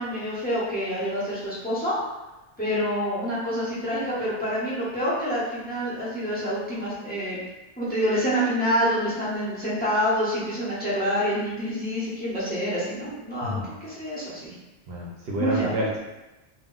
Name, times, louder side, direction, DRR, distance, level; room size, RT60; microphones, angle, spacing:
voice 1, 0.0-2.0 2.6-7.4 7.8-14.5 15.4-15.7, equal, 10° left, -10 dB, 0.7 m, -27 dB
voice 2, 13.4-13.7 14.9-16.0, equal, 65° right, -4 dB, 0.7 m, -28 dB
2.2 x 2.0 x 3.7 m, 1.0 s
omnidirectional pair, 1.2 m